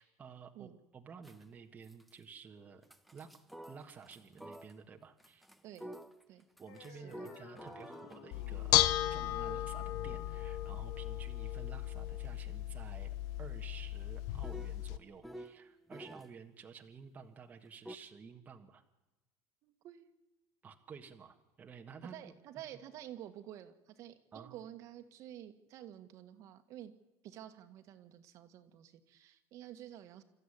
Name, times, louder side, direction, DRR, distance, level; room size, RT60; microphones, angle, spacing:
voice 1, 0.0-0.7 0.9-2.8 3.1-3.3 3.7-5.5 6.6-18.8 20.6-22.3 24.3-24.6, right 6 dB, 20° right, 3 dB, 1.5 m, -52 dB
sound 1, 1.2-1.5 1.8-2.2 2.8-4.8 5.2-16.3 17.8-18.0, right 1 dB, ahead, 0.9 m, -53 dB
sound 2, 6.7-13.7, left 7 dB, 80° left, 3.2 m, -57 dB
voice 2, 6.9-7.3 19.6-20.1 22.0-26.9 27.2-30.2, right 11 dB, 50° right, 8 dB, 1.8 m, -50 dB
Bell / Dishes pots and pans, 8.3-15.0, left 15 dB, 65° left, 0.9 m, -35 dB
27.0 x 14.0 x 10.0 m, 1.1 s
cardioid pair, 160°, 7 cm